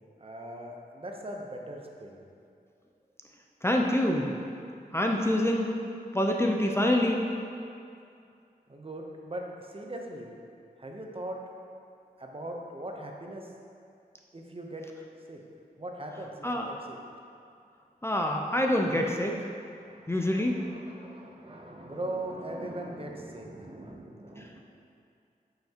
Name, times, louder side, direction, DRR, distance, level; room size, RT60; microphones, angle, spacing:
voice 1, 0.2-2.2 8.7-10.3 10.8-11.5 12.2-13.5 14.3-14.9 15.3-15.4 15.8-17.0 19.8-24.6, right 1 dB, 35° right, 1 dB, 0.8 m, -40 dB
voice 2, 3.6-4.3 4.9-5.7 6.1-7.2 16.4-16.7 18.0-19.4 20.1-20.6, left 1 dB, 15° left, 0 dB, 0.5 m, -26 dB
8.6 x 5.8 x 2.9 m, 2.5 s
wide cardioid pair, 65°, 16 cm